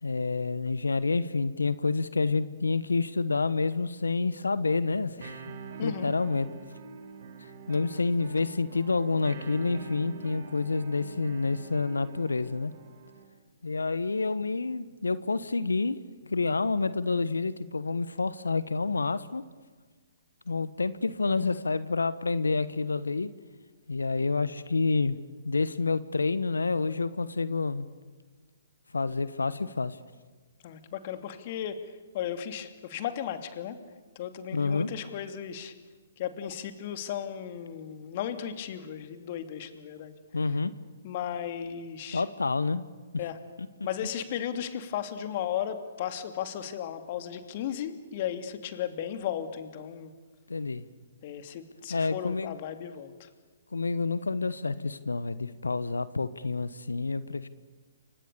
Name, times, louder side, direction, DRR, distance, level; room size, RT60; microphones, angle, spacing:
voice 1, 0.0-5.4 5.8-6.5 7.7-12.7 13.6-19.5 20.5-23.3 23.9-25.2 25.4-27.9 28.9-30.0 34.5-34.9 40.3-40.7 42.1-42.8 43.6-43.7 50.5-50.8 51.9-52.6 53.7-57.5, left 4 dB, 80° left, 16 dB, 1.2 m, -28 dB
sound 1, 5.2-13.2, right 5 dB, 55° right, 5.9 m, -45 dB
voice 2, 5.8-6.1 30.6-33.8 34.1-35.7 36.2-40.1 41.0-42.2 43.2-43.4 43.8-50.1 51.2-53.3, left 9 dB, 45° left, 8 dB, 2.7 m, -35 dB
29.0 x 25.5 x 7.0 m, 1.4 s
figure-of-eight pair, 125°, 0 cm